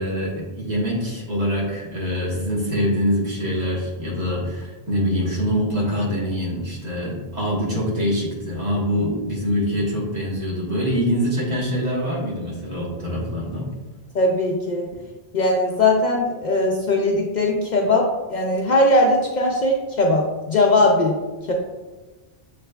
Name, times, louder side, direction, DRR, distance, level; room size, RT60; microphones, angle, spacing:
voice 1, 0.0-13.7, equal, 45° right, -5 dB, 1.3 m, -24 dB
voice 2, 14.1-14.8 15.3-21.2 21.5-21.6, left 2 dB, 55° left, -1 dB, 0.6 m, -19 dB
6.7 x 3.2 x 2.2 m, 1.2 s
omnidirectional pair, 1.1 m